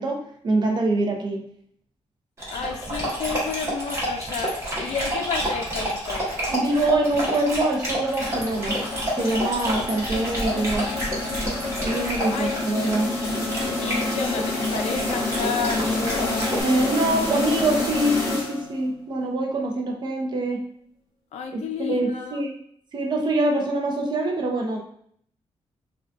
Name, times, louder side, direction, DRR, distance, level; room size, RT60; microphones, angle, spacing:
voice 1, 0.0-1.4 6.5-8.8 9.2-10.9 11.8-13.1 16.6-20.6 21.5-22.5 22.9-24.8, right 2 dB, 40° right, 2 dB, 0.5 m, -24 dB
Dog, 2.4-16.6, right 1 dB, 25° right, 1.0 m, -29 dB
voice 2, 2.5-6.2 12.3-12.5 13.8-16.6 21.3-22.4, left 6 dB, 80° left, 5 dB, 0.4 m, -31 dB
sound 1, 8.2-18.9, left 2 dB, 25° left, 0.9 m, -28 dB
Keyboard (musical), 9.4-12.0, right 1 dB, ahead, 0.8 m, -43 dB
3.7 x 2.2 x 2.5 m, 0.65 s
wide cardioid pair, 170°, 11 cm